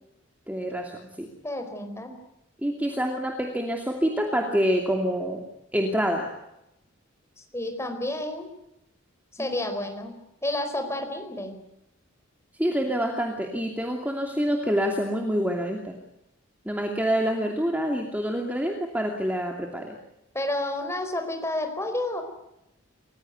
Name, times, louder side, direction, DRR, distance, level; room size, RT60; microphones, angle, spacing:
voice 1, 0.5-0.9 1.2-1.3 2.6-5.4 5.7-6.3 9.4-9.6 12.6-16.0 16.6-20.0, equal, 10° right, 2 dB, 2.7 m, -26 dB
voice 2, 1.4-2.1 7.5-8.5 9.3-10.1 10.4-11.6 20.3-22.2, left 1 dB, 15° left, 6 dB, 4.6 m, -30 dB
28.5 x 16.5 x 9.5 m, 0.86 s
head